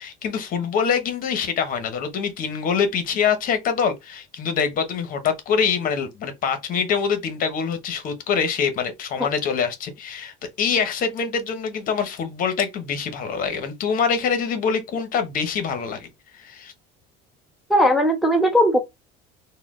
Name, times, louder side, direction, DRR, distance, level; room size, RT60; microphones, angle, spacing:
voice 1, 0.0-16.1 16.4-16.7, left 6 dB, 45° left, 0.9 m, -24 dB
voice 2, 17.7-18.8, equal, ahead, 0.5 m, -18 dB
4.2 x 2.2 x 3.6 m
cardioid pair, 135°, 20 cm